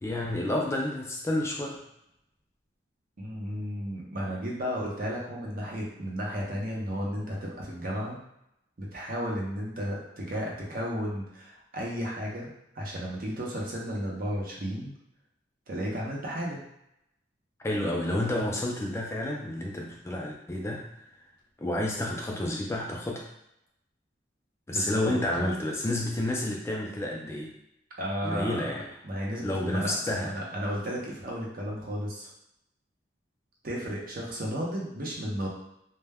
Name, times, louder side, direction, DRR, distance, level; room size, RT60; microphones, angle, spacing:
voice 1, 0.0-1.8 17.6-21.0 21.6-23.3 24.7-27.5 28.2-28.9 29.4-30.3, left 1 dB, 15° left, -1 dB, 0.3 m, -30 dB
voice 2, 3.2-8.2 8.8-12.5 12.7-14.9 15.7-16.6 24.7-25.2 28.0-28.8 29.0-32.3 33.6-35.5, equal, 55° right, -3 dB, 0.7 m, -33 dB
2.1 x 2.1 x 3.4 m, 0.80 s
head